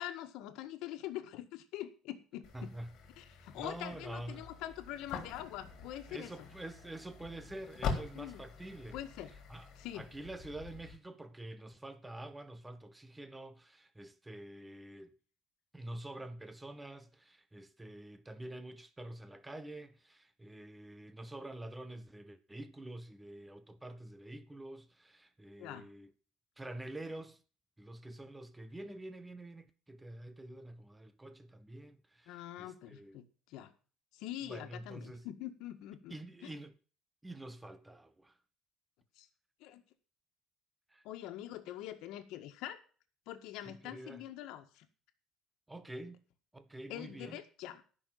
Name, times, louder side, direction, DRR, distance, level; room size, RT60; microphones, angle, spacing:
voice 1, 0.0-2.7 3.2-6.3 8.1-8.4 8.9-9.3 9.7-10.1 25.6-25.8 32.3-33.7 34.1-36.2 36.4-36.5 39.2-39.3 39.6-39.8 41.0-42.8 43.3-44.9 46.9-47.8, left 13 dB, 75° left, 1.7 m, -44 dB
sound 1, 2.4-11.0, left 5 dB, 50° left, 3.7 m, -44 dB
voice 2, 2.5-2.9 3.6-4.5 6.1-9.0 9.5-9.7 9.9-15.1 15.7-26.1 26.6-27.4 27.8-33.2 34.5-35.3 36.1-36.7 37.2-38.4 40.9-41.0 43.6-44.2 45.7-46.2 46.5-47.4, right 1 dB, 10° right, 0.8 m, -47 dB
13.5 x 6.3 x 7.6 m
cardioid pair, 165°, 0 cm